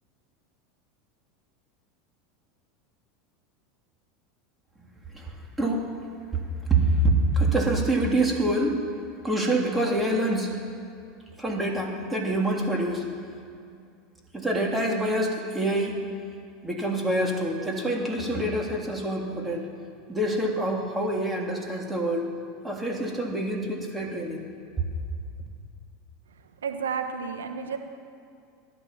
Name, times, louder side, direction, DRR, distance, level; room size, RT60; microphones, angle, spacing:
voice 1, 5.1-5.9 6.3-6.4 6.7-8.8 9.2-10.6 11.4-13.0 14.3-16.0 16.6-19.7 20.1-22.3 22.6-24.4, right 1 dB, 10° right, -1 dB, 3.3 m, -26 dB
voice 2, 26.6-27.8, right 6 dB, 90° right, 6 dB, 1.1 m, -31 dB
15.5 x 12.0 x 7.3 m, 2.4 s
hypercardioid pair, 95°, 0 cm